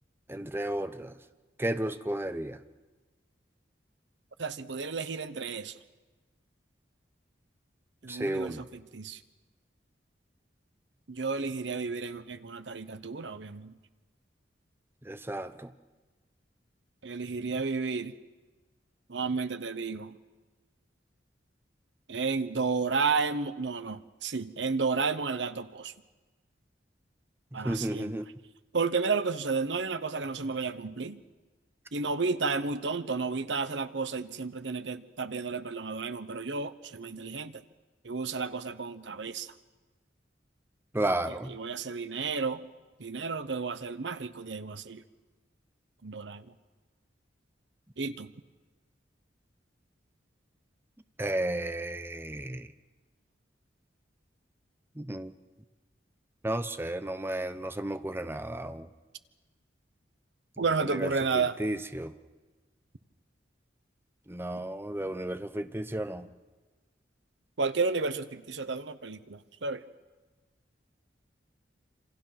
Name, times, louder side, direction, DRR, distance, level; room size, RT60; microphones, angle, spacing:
voice 1, 0.3-1.1 1.6-2.6 8.1-8.6 15.0-15.7 27.5-28.3 40.9-41.5 51.2-52.7 55.0-55.3 56.4-58.9 60.8-62.1 64.3-66.3, right 1 dB, 15° right, 10 dB, 0.8 m, -33 dB
voice 2, 4.4-5.8 8.0-9.2 11.1-13.7 17.0-18.1 19.1-20.2 22.1-25.9 27.5-28.1 28.7-31.2 31.9-37.6 38.0-39.5 41.5-42.6 43.0-45.0 46.0-46.5 48.0-48.3 60.6-61.6 67.6-69.8, right 4 dB, 75° right, 12 dB, 1.0 m, -32 dB
27.0 x 26.5 x 6.0 m, 1.3 s
head